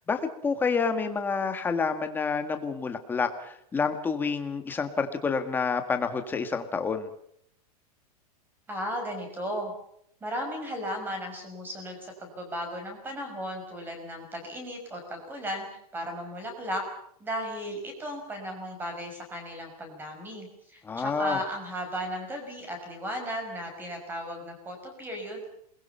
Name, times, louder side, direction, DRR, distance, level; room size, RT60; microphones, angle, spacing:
voice 1, 0.1-7.1 20.8-21.4, left 5 dB, 10° left, 7 dB, 1.8 m, -28 dB
voice 2, 8.7-9.7 10.2-15.7 15.9-16.8 17.2-25.4, equal, 10° right, 4 dB, 6.0 m, -35 dB
28.5 x 21.5 x 5.8 m, 0.70 s
supercardioid pair, 165°, 20 cm